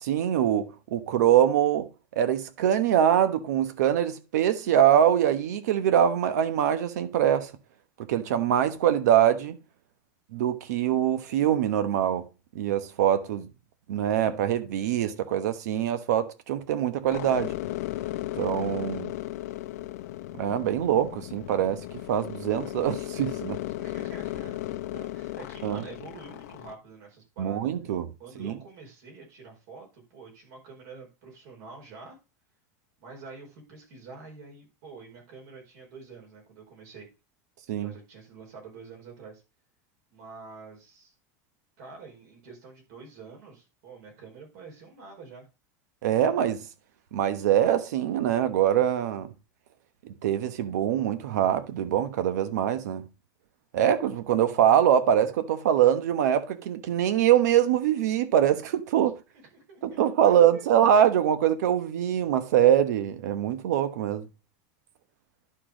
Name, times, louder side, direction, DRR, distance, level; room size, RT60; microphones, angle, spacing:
voice 1, 0.0-1.9 2.1-7.5 8.1-9.6 10.3-12.3 12.5-13.5 13.9-17.5 18.4-19.1 20.4-21.8 22.1-23.6 25.6-25.8 27.4-28.1 28.4-28.5 37.7-37.9 46.0-46.6 47.1-49.3 50.0-53.1 53.7-59.2 59.8-64.2, right 10 dB, 85° right, 1.1 m, -23 dB
sound 1, 17.1-26.7, left 15 dB, 70° left, 0.6 m, -36 dB
voice 2, 23.8-27.7 28.2-32.2 33.0-37.1 37.8-39.4 40.1-41.1 41.8-45.5 59.3-60.6, right 4 dB, 55° right, 4.8 m, -47 dB
11.0 x 4.5 x 5.0 m
supercardioid pair, 175°, 9 cm